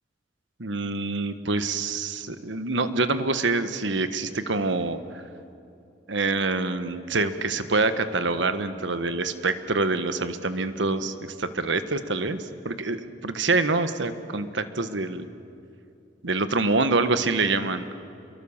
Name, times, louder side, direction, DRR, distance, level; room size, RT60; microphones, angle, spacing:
voice 1, 0.6-5.0 6.1-15.3 16.2-18.0, right 3 dB, 75° right, 10 dB, 1.4 m, -26 dB
28.0 x 23.0 x 7.3 m, 2.6 s
head